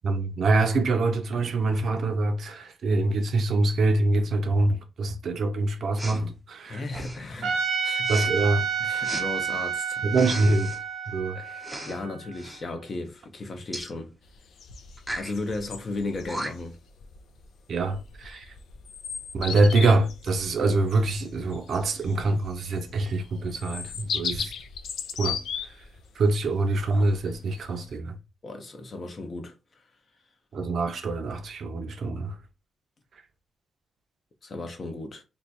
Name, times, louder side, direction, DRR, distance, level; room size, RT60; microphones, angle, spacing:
voice 1, 0.0-6.8 8.1-8.7 10.0-10.7 11.1-11.4 17.7-18.4 19.3-24.5 25.2-25.4 26.2-28.2 30.5-32.3, right 2 dB, 55° right, 0.6 m, -25 dB
Respiratory sounds, 6.0-6.2 6.9-7.3 8.0-8.3 9.0-9.3 10.1-10.8 11.6-12.0 12.3-12.6 13.7-13.9 15.0-15.3 16.0-16.1 16.3-16.8, right 1 dB, 5° right, 0.6 m, -36 dB
voice 2, 6.7-8.3 8.8-10.0 11.3-14.1 15.1-16.8 28.4-29.5 34.4-35.2, left 2 dB, 35° left, 0.8 m, -35 dB
Trumpet, 7.4-12.6, right 6 dB, 85° right, 0.8 m, -30 dB
sound 1, 14.2-27.9, left 6 dB, 75° left, 0.5 m, -37 dB
3.1 x 2.3 x 4.0 m
wide cardioid pair, 160°, 0 cm